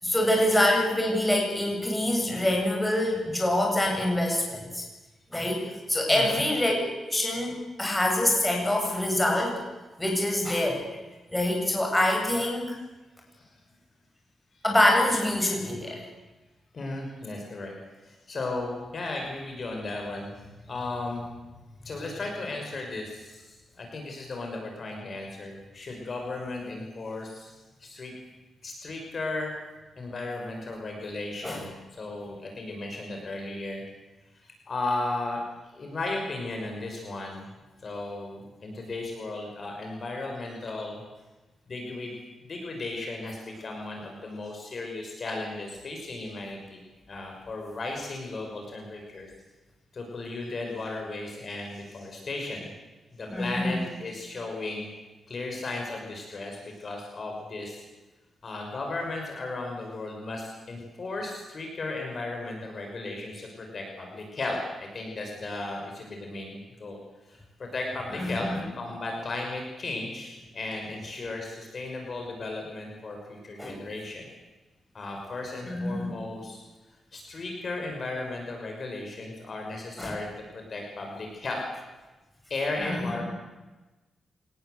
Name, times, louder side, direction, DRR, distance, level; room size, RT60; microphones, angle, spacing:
voice 1, 0.0-4.8 5.3-5.6 5.9-6.8 7.1-9.6 10.0-10.8 11.3-12.8 14.6-16.1 31.4-31.6 53.3-53.8 68.1-68.6 73.6-73.7 75.7-76.1 80.0-80.1 82.8-83.2, left 1 dB, 10° left, 0 dB, 7.7 m, -25 dB
voice 2, 6.1-6.4 13.3-13.5 16.7-17.7 18.0-21.3 21.8-27.5 27.8-28.1 28.6-29.5 30.0-33.8 34.3-35.4 35.7-37.5 37.8-41.0 41.7-42.1 42.5-49.3 49.9-52.7 53.1-54.9 55.3-57.8 58.4-67.0 67.3-74.3 74.9-76.6 77.1-80.3 80.5-81.6 82.5-83.2, left 2 dB, 40° left, 1 dB, 6.0 m, -35 dB
27.0 x 19.5 x 8.2 m, 1.1 s
cardioid pair, 125°, 0 cm